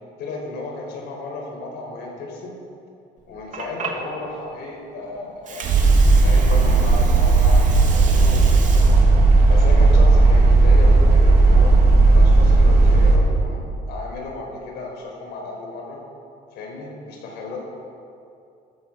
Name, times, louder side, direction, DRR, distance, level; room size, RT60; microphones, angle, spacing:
voice 1, 0.2-2.6 3.3-9.1 9.5-11.7 12.0-16.0 16.5-17.6, left 2 dB, 80° left, 0 dB, 4.9 m, -34 dB
Water, 3.2-11.1, right 5 dB, 45° right, 2.6 m, -36 dB
sound 1, 5.6-13.2, right 3 dB, 75° right, 2.6 m, -14 dB
17.0 x 14.0 x 5.4 m, 2.6 s
cardioid pair, 110°, 17 cm